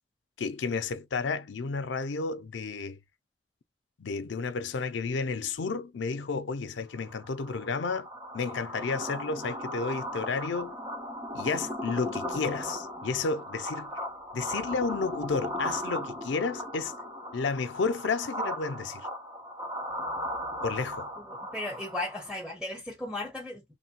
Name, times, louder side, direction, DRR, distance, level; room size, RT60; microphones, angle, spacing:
voice 1, 0.4-3.0 4.0-8.1 8.3-10.8 11.3-13.9 14.3-16.9 17.3-19.1 20.6-21.1, left 4 dB, 85° left, 0.5 m, -31 dB
sound 1, 7.0-22.4, equal, 20° right, 0.7 m, -37 dB
voice 2, 21.2-23.6, left 2 dB, 5° right, 1.1 m, -36 dB
3.1 x 2.1 x 2.8 m
head